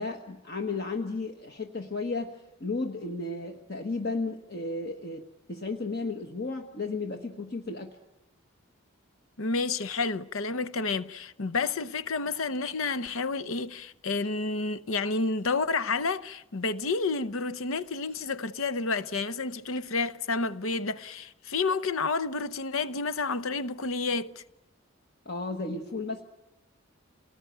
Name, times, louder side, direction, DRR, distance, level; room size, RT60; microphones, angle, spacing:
voice 1, 0.0-8.0 25.2-26.2, left 3 dB, 45° left, 1.4 m, -34 dB
voice 2, 9.4-24.4, left 4 dB, 70° left, 0.8 m, -30 dB
27.5 x 19.5 x 9.3 m
head